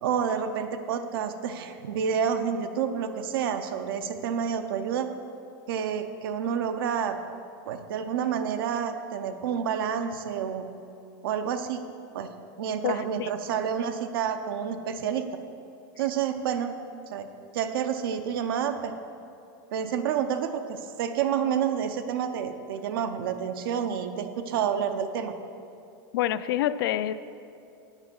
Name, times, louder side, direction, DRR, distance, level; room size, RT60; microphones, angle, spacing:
voice 1, 0.0-5.1 5.7-7.2 7.7-10.7 11.2-11.8 12.1-12.3 12.6-15.3 16.0-16.7 17.1-17.3 17.5-18.9 19.7-25.3, right 8 dB, 90° right, 8 dB, 0.6 m, -29 dB
voice 2, 12.8-13.3 26.1-27.1, left 12 dB, 90° left, 14 dB, 0.4 m, -27 dB
8.9 x 5.2 x 7.1 m, 2.6 s
supercardioid pair, 175°, 12 cm